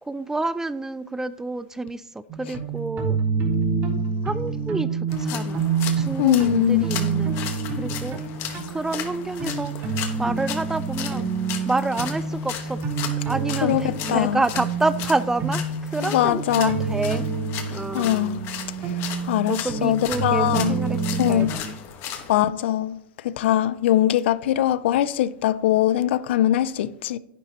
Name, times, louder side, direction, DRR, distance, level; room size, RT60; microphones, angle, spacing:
voice 1, 0.0-3.2 4.2-5.7 6.0-7.4 7.7-8.3 8.7-11.3 11.6-17.3 17.7-18.2 19.5-21.8, right 2 dB, 10° right, 0.4 m, -28 dB
sound 1, 2.3-21.5, right 5 dB, 35° right, 3.6 m, -28 dB
sound 2, 5.1-22.3, left 9 dB, 45° left, 1.6 m, -36 dB
voice 2, 6.2-6.9 13.6-13.8 14.1-14.4 16.1-16.8 17.9-18.4 19.3-20.7 21.2-21.5 22.3-23.0 23.2-27.2, left 12 dB, 70° left, 0.5 m, -21 dB
10.5 x 10.0 x 3.1 m
hypercardioid pair, 130°, 6 cm